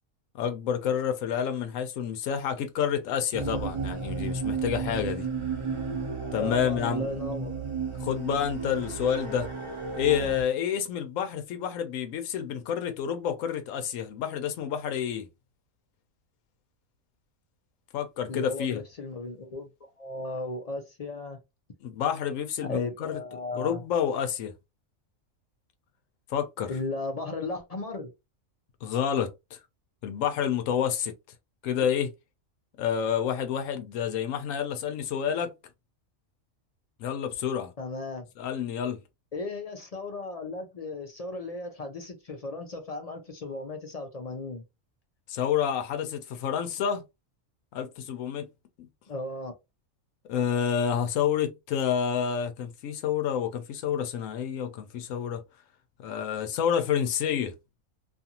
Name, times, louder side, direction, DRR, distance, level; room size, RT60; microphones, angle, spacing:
voice 1, 0.3-5.3 6.3-7.1 8.0-9.5 9.9-15.3 17.9-18.8 21.8-23.2 23.6-24.5 26.3-26.7 28.8-29.6 30.0-31.1 31.6-32.1 32.8-35.5 37.0-37.7 38.4-39.0 45.3-47.0 47.7-48.5 48.8-48.9 50.3-55.4 56.0-57.5, left 8 dB, 85° left, 1.0 m, -29 dB
sound 1, 3.3-10.4, right 4 dB, 30° right, 0.7 m, -33 dB
voice 2, 6.4-7.5 18.3-21.4 22.7-23.8 26.7-28.1 37.8-38.3 39.3-44.6 49.1-49.5, left 2 dB, 55° left, 0.4 m, -36 dB
2.6 x 2.4 x 2.7 m
omnidirectional pair, 1.3 m